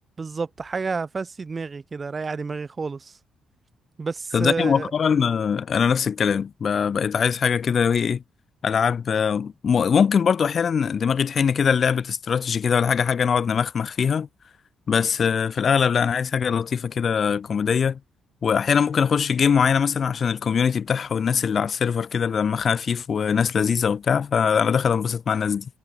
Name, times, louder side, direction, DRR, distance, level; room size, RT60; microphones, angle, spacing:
voice 1, 0.2-3.2 4.0-4.9, right 4 dB, 30° right, 0.9 m, -30 dB
voice 2, 4.3-8.2 8.6-14.3 14.9-18.0 18.4-25.7, left 6 dB, 50° left, 0.4 m, -22 dB
cardioid pair, 90°, 0 cm